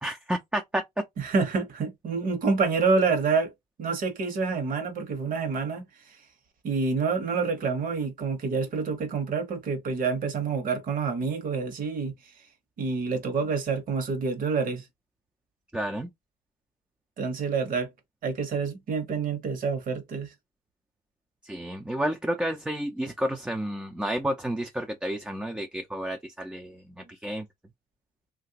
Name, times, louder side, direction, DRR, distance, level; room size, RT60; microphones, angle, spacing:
voice 1, 0.0-0.8 15.7-16.1 21.4-26.8 27.1-27.4, right 1 dB, 5° right, 0.4 m, -30 dB
voice 2, 1.2-3.5 3.8-5.8 6.6-12.1 12.8-14.8 17.2-17.9 18.2-20.3, right 4 dB, 55° right, 1.1 m, -27 dB
3.1 x 2.5 x 2.8 m
cardioid pair, 110°, 17 cm